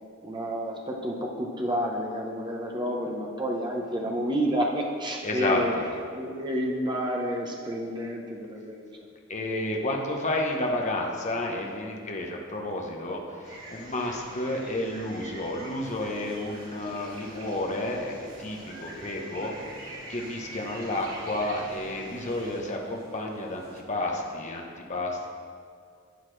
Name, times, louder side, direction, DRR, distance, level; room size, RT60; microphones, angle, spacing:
voice 1, 0.2-5.7 6.1-8.9, equal, 20° right, 0 dB, 1.0 m, -30 dB
voice 2, 5.2-5.6 9.3-25.3, left 1 dB, 35° left, 0 dB, 1.0 m, -31 dB
sound 1, 13.4-22.6, right 1 dB, 85° right, 2.0 m, -45 dB
sound 2, 15.8-23.8, right 1 dB, 50° right, 0.9 m, -49 dB
12.0 x 8.2 x 3.3 m, 2.2 s
head